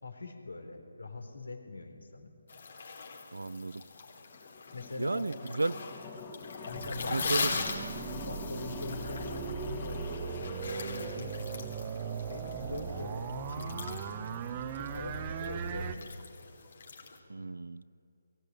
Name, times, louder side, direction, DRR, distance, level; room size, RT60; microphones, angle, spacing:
voice 1, 0.0-2.3 4.7-5.3 6.6-7.7 8.1-11.7 12.3-16.2, left 3 dB, 80° left, 5 dB, 3.8 m, -43 dB
sound 1, 2.5-17.2, left 4 dB, 60° left, 3.9 m, -41 dB
voice 2, 3.3-3.8 5.0-5.8 7.1-7.6 17.3-17.8, right 2 dB, 80° right, 18 dB, 0.7 m, -33 dB
sound 2, 4.3-12.1, left 5 dB, 25° left, 2.1 m, -45 dB
sound 3, 6.7-15.9, right 7 dB, 30° right, 1.1 m, -39 dB
22.0 x 17.0 x 9.3 m, 2.7 s
figure-of-eight pair, 150°, 0 cm